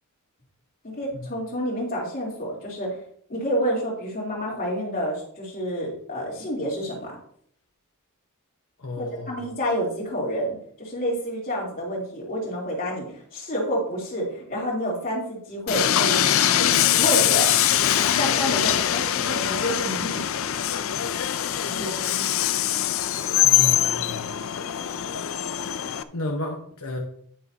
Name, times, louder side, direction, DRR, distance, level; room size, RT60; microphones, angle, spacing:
voice 1, 0.8-2.9 3.3-7.2 9.0-17.5 18.1-20.2 21.6-22.3, equal, 40° left, -4 dB, 3.3 m, -29 dB
voice 2, 8.8-9.5 23.4-24.4 26.1-27.0, left 2 dB, 80° left, 1 dB, 1.1 m, -32 dB
Train, 15.7-26.0, left 11 dB, 65° left, 0.5 m, -23 dB
10.0 x 9.6 x 2.8 m, 0.64 s
head